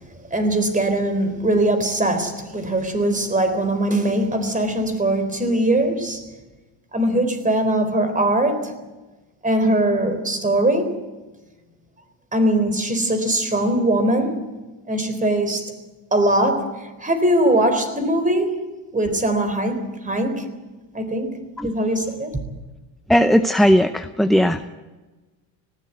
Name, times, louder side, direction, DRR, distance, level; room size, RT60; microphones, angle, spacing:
voice 1, 0.0-6.2 6.9-8.7 9.4-10.9 12.3-14.4 14.9-15.7 16.1-16.7 17.0-18.7 18.9-20.5 20.9-21.3 21.6-22.4, right 1 dB, 15° right, 3.9 m, -21 dB
voice 2, 23.1-24.6, equal, ahead, 0.6 m, -17 dB
19.5 x 16.0 x 9.3 m
supercardioid pair, 105°, 49 cm